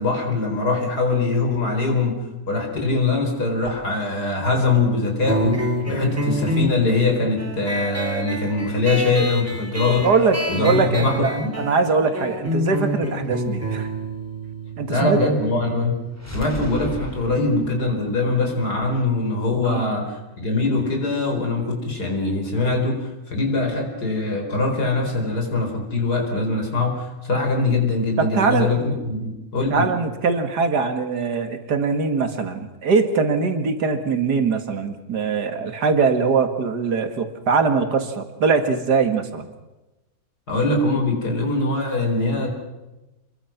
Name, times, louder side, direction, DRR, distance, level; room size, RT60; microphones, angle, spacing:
voice 1, 0.0-2.1 2.5-10.1 10.5-11.5 14.9-16.0 16.3-29.9 40.5-42.5, left 3 dB, 60° left, 2 dB, 5.1 m, -22 dB
sound 1, 5.3-16.4, equal, 10° right, 3.1 m, -28 dB
voice 2, 10.0-13.9 14.8-15.2 19.6-19.9 28.2-28.7 29.7-39.5, right 4 dB, 65° right, 8 dB, 2.5 m, -22 dB
sound 2, 16.1-20.0, equal, 10° left, 2.6 m, -37 dB
28.0 x 22.0 x 6.0 m, 1.0 s
omnidirectional pair, 1.9 m